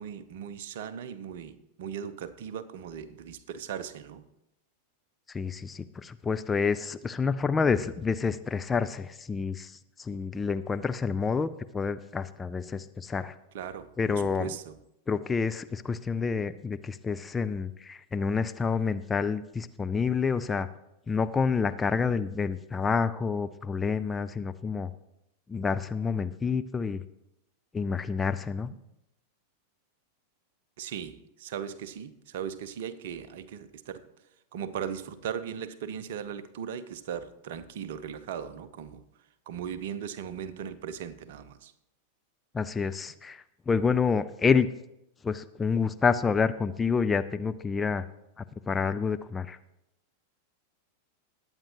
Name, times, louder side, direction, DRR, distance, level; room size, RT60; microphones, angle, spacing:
voice 1, 0.0-4.2 13.5-14.7 30.8-34.0 34.5-39.0 39.5-41.7, right 8 dB, 55° right, 14 dB, 0.8 m, -38 dB
voice 2, 5.3-9.7 10.0-13.3 14.0-14.5 15.1-20.7 21.1-24.9 25.5-27.0 27.7-28.7 42.5-44.7 45.2-48.1 48.4-49.6, left 5 dB, 15° left, 10 dB, 0.4 m, -28 dB
20.0 x 8.9 x 3.0 m, 0.86 s
figure-of-eight pair, 90°, 0 cm